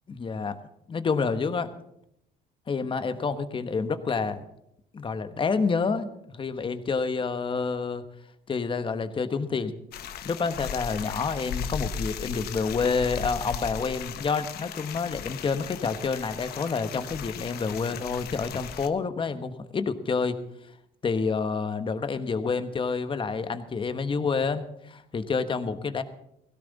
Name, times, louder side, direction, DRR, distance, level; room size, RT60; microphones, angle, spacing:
voice 1, 0.1-0.6 0.9-1.7 2.7-4.4 4.9-8.0 8.5-9.7 10.2-20.4 21.0-26.0, left 5 dB, 30° left, 10 dB, 1.3 m, -28 dB
sound 1, 9.9-18.9, left 7 dB, 70° left, 1.1 m, -37 dB
17.0 x 16.5 x 4.1 m, 0.78 s
cardioid pair, 110°, 17 cm